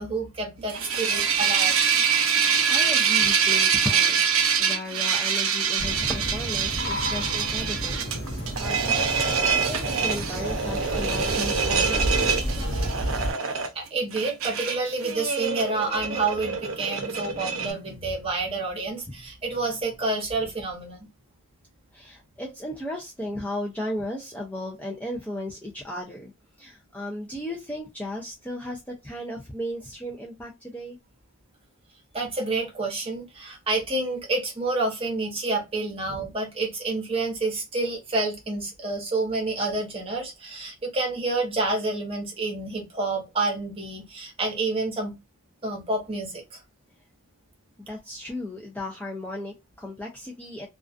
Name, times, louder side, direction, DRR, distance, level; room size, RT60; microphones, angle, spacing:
voice 1, 0.0-1.8 6.7-6.8 13.7-21.1 32.1-45.2 45.6-46.6, right 3 dB, 25° right, 1 dB, 0.9 m, -29 dB
sound 1, 0.6-17.7, right 6 dB, 75° right, 0.6 m, -25 dB
voice 2, 2.7-8.0 8.6-12.7 21.9-26.3 26.6-31.0 47.9-50.7, left 1 dB, 5° left, -2 dB, 0.4 m, -35 dB
sound 2, 5.8-13.3, equal, 55° left, 0.8 m, -31 dB
2.3 x 2.3 x 2.4 m, 0.23 s
head